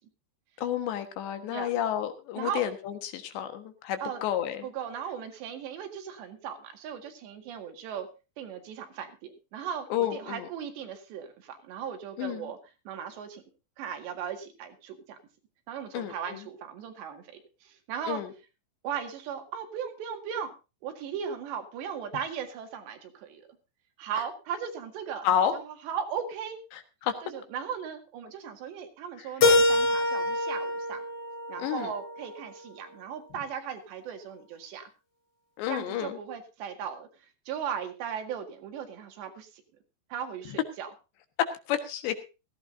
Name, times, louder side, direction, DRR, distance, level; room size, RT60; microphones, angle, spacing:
voice 1, 0.6-4.7 9.9-10.5 12.2-12.5 15.9-16.4 18.1-18.3 25.2-25.6 26.7-27.1 31.6-31.9 35.6-36.2 41.4-42.2, left 10 dB, 80° left, 8 dB, 3.7 m, -30 dB
voice 2, 2.4-2.7 4.0-4.2 4.6-8.1 8.4-12.6 12.9-13.4 13.8-15.2 15.7-18.2 18.8-20.5 20.8-23.5 24.0-26.6 27.2-31.0 31.5-34.8 35.7-37.1 37.5-39.5 40.1-40.9, right 8 dB, 75° right, 5 dB, 4.1 m, -37 dB
Keyboard (musical), 29.4-32.3, left 2 dB, 35° left, 3.7 m, -25 dB
17.5 x 15.5 x 2.7 m, 0.30 s
omnidirectional pair, 5.1 m